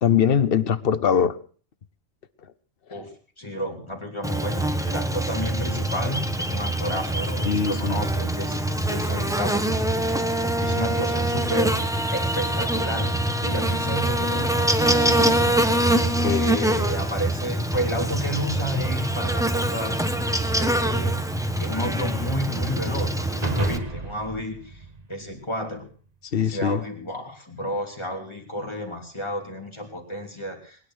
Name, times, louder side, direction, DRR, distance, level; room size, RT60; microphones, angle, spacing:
voice 1, 0.0-1.4 7.5-8.0 16.2-16.4 26.3-26.8, left 7 dB, 55° left, 13 dB, 1.1 m, -21 dB
voice 2, 2.9-8.6 8.9-9.7 9.9-10.2 10.6-11.8 12.1-13.2 13.4-15.7 16.2-20.0 20.5-21.2 21.6-25.9 26.4-30.9, equal, 25° left, 2 dB, 3.2 m, -31 dB
Buzz, 4.2-23.8, right 1 dB, 5° right, 1.1 m, -24 dB
sound 1, 23.4-25.9, right 2 dB, 35° right, 1.6 m, -32 dB
21.0 x 10.5 x 6.3 m, 0.42 s
omnidirectional pair, 1.2 m